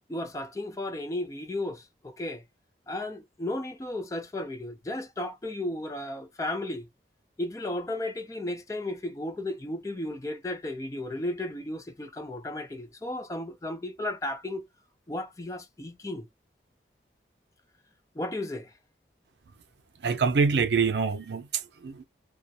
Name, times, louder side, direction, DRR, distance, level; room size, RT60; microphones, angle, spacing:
voice 1, 0.1-2.4 2.9-6.9 7.4-14.6 15.1-16.3 18.2-18.7, left 1 dB, 20° left, 0.4 m, -34 dB
voice 2, 20.0-22.0, right 5 dB, 80° right, 0.5 m, -25 dB
2.3 x 2.0 x 2.6 m
head